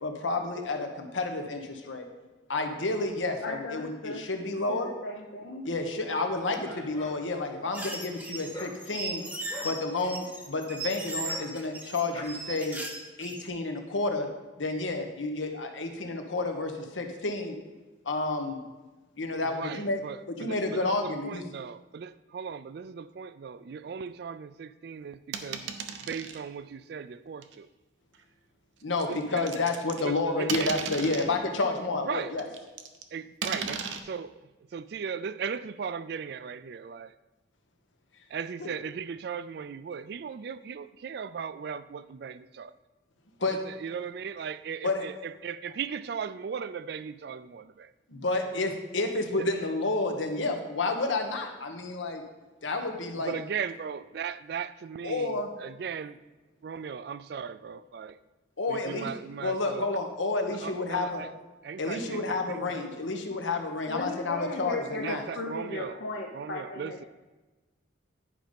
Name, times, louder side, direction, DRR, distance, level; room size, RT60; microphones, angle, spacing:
voice 1, 0.0-2.1 2.5-4.9 5.6-9.2 9.6-12.8 13.2-14.3 14.6-17.6 18.0-18.6 19.2-20.0 20.4-21.4 28.8-32.4 38.6-38.7 43.4-43.6 44.8-45.1 48.1-52.2 52.6-53.3 55.0-55.5 58.6-59.1 59.4-61.2 61.8-65.2, left 3 dB, 90° left, 5 dB, 1.1 m, -30 dB
voice 2, 3.4-4.3 4.7-5.6 63.9-67.0, left 2 dB, 70° left, 1 dB, 0.7 m, -36 dB
Dog, 6.2-12.2, left 1 dB, 20° left, 1.1 m, -47 dB
sound 1, 7.7-13.5, right 2 dB, 10° right, 0.7 m, -38 dB
voice 3, 19.3-27.7 29.1-29.5 30.0-30.7 32.0-32.6 33.1-37.1 38.3-42.8 43.5-47.9 49.4-49.5 53.2-56.2 56.6-58.2 58.7-59.9 60.5-61.3 61.6-62.8 65.0-66.0 66.3-67.0, right 6 dB, 55° right, 15 dB, 0.3 m, -38 dB
sound 2, 25.3-26.4 27.4-27.6 29.0-30.1 30.5-31.3 32.4-33.0 33.4-34.0, right 6 dB, 75° right, 0.7 m, -35 dB
10.0 x 5.2 x 5.2 m, 1.2 s
head